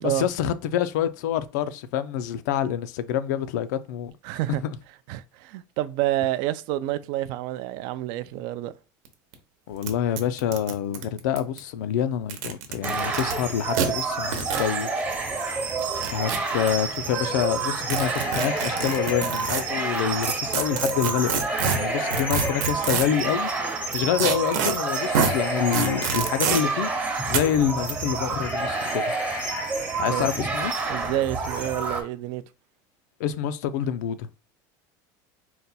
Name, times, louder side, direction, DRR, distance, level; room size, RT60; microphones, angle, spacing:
voice 1, 0.0-4.1 9.7-14.9 15.2-15.6 16.1-23.5 23.9-26.9 27.3-29.1 30.0-30.7 33.2-34.3, left 9 dB, 85° left, 0.5 m, -27 dB
voice 2, 4.2-4.6 5.1-8.7 30.1-30.3 30.9-32.4, right 14 dB, 50° right, 0.3 m, -28 dB
sound 1, 9.1-9.2 9.3-9.4 9.8-9.9 10.2-11.6 12.2-13.3 13.7-13.9 14.3-14.7 15.8-16.7 17.9-19.6 20.2-23.2 24.2-24.7 25.1-25.3 25.7-26.6 27.3-27.4, right 6 dB, 80° right, 0.9 m, -26 dB
Police Bicycle Brakes Underscore Black Lives Matter March, 12.8-32.0, right 3 dB, 15° right, 0.7 m, -29 dB
sound 2, 16.4-17.0 18.0-20.4 21.4-23.9 24.9-27.3 28.4-30.5, left 5 dB, 20° left, 0.5 m, -38 dB
4.1 x 2.2 x 4.0 m
cardioid pair, 170°, 9 cm